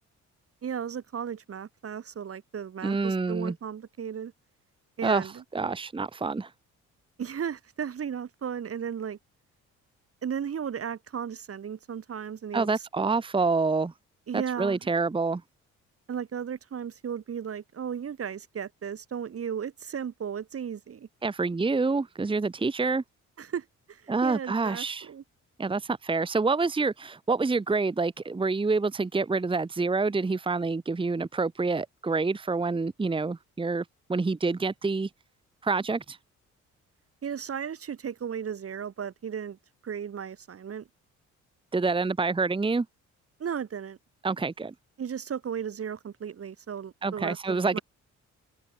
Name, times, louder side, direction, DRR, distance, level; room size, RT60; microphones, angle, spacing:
voice 1, 0.6-4.3 5.0-5.4 7.2-9.2 10.2-12.7 14.3-14.8 16.1-21.1 23.4-25.2 37.2-39.6 39.8-40.9 43.4-44.0 45.0-47.8, right 8 dB, 50° right, 3.0 m, -35 dB
voice 2, 2.8-3.5 5.0-6.5 12.5-13.9 14.3-15.4 21.2-23.0 24.1-25.1 25.6-35.1 35.6-36.2 41.7-42.9 44.2-44.7 47.0-47.8, right 4 dB, 15° right, 1.1 m, -27 dB
open air
cardioid pair, 90°, 30 cm